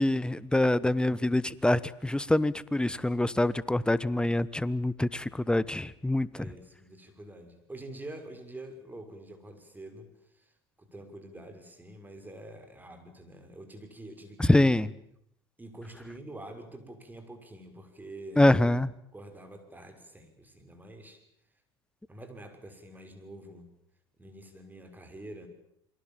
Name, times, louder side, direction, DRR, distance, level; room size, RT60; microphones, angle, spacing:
voice 1, 0.0-6.3 14.5-14.9 18.4-18.9, left 1 dB, 5° left, 19 dB, 1.2 m, -25 dB
voice 2, 6.4-14.7 15.6-18.5 19.1-21.2 22.1-23.7 24.2-25.5, right 1 dB, 15° right, 7 dB, 6.5 m, -46 dB
28.0 x 23.5 x 7.5 m, 0.70 s
hypercardioid pair, 80°, 14 cm